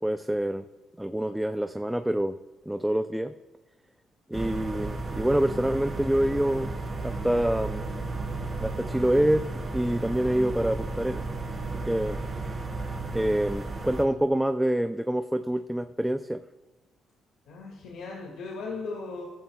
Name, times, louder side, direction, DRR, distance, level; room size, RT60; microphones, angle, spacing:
voice 1, 0.0-0.6 1.0-2.4 2.7-3.3 4.3-6.7 7.0-7.9 8.6-11.2 11.8-12.2 13.1-16.4, right 1 dB, 5° right, 8 dB, 0.4 m, -26 dB
sound 1, 4.3-14.0, right 3 dB, 35° right, 3.2 m, -33 dB
voice 2, 17.5-19.2, left 4 dB, 85° left, -1 dB, 2.0 m, -37 dB
14.0 x 14.0 x 2.3 m, 1.2 s
cardioid pair, 90°, 0 cm